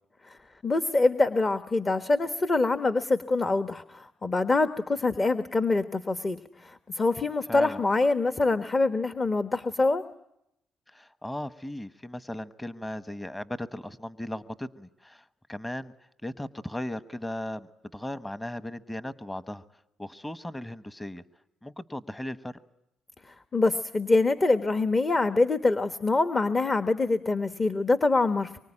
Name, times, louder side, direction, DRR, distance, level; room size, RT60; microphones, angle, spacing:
voice 1, 0.6-10.0 23.5-28.6, left 3 dB, 30° left, 10 dB, 1.3 m, -25 dB
voice 2, 7.5-7.8 10.9-15.2 15.5-15.9 16.2-19.6 20.0-21.2 21.6-22.5, left 1 dB, 10° left, 13 dB, 1.2 m, -37 dB
25.0 x 24.0 x 10.0 m, 0.81 s
cardioid pair, 90°, 0 cm